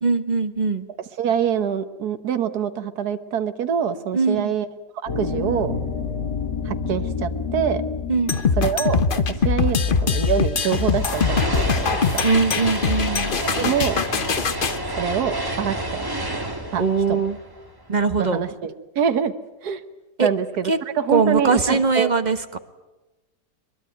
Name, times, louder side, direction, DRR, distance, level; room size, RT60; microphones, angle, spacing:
voice 1, 0.0-0.9 4.1-4.5 8.1-8.4 12.2-13.3 16.8-17.4 17.9-18.4 20.2-20.3 20.6-20.8 21.1-22.6, right 4 dB, 30° right, 9 dB, 1.2 m, -21 dB
voice 2, 1.2-4.7 5.0-5.8 6.6-7.8 8.6-12.2 13.6-14.0 15.0-16.0 16.7-16.8 17.1-17.2 18.2-19.3 19.6-19.8 20.2-22.1, right 8 dB, 70° right, 9 dB, 1.7 m, -25 dB
sound 1, 5.1-10.2, left 5 dB, 85° left, 2.9 m, -29 dB
sound 2, 8.3-14.8, left 5 dB, 40° left, 0.9 m, -22 dB
sound 3, 10.6-18.0, right 1 dB, 15° right, 2.3 m, -29 dB
23.0 x 22.5 x 9.2 m, 1.1 s
omnidirectional pair, 1.8 m